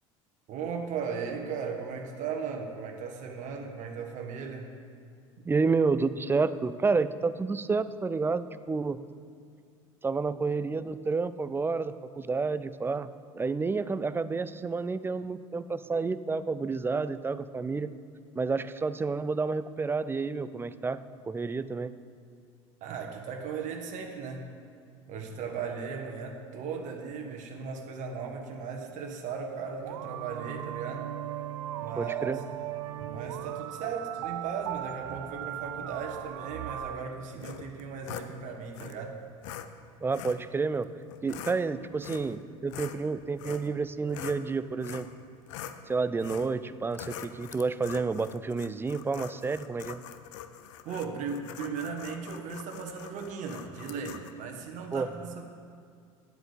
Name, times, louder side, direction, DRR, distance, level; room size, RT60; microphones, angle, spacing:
voice 1, 0.5-4.7 22.8-24.5 25.0-31.1 31.7-32.4 33.0-39.1 50.8-55.4, right 5 dB, 50° right, 2 dB, 1.5 m, -37 dB
voice 2, 5.4-9.0 10.0-13.1 13.3-17.9 18.4-21.9 32.0-32.4 40.0-40.9 41.2-45.1 45.9-50.0 54.9-55.1, right 4 dB, 15° right, 14 dB, 0.5 m, -30 dB
sound 1, 29.8-37.0, right 13 dB, 65° right, 0.5 m, -37 dB
sound 2, 37.4-38.3 38.7-38.9 39.4-39.7 40.1-40.4 41.1-41.6 42.0-42.4 42.7-44.4 44.8-45.1 45.5-45.8 46.2-46.5 46.9-54.3, left 10 dB, 65° left, 0.7 m, -43 dB
10.0 x 7.8 x 6.8 m, 2.3 s
figure-of-eight pair, 70°, 17 cm